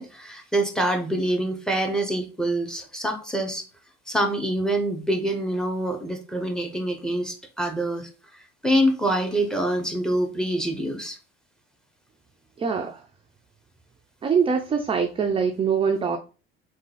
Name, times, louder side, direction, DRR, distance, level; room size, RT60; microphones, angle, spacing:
voice 1, 0.0-3.6 4.1-8.1 8.6-11.2, right 1 dB, ahead, 0.8 m, -25 dB
voice 2, 12.6-13.0 14.2-16.2, right 6 dB, 20° right, 0.4 m, -23 dB
3.5 x 2.3 x 3.2 m
hypercardioid pair, 65°, 30 cm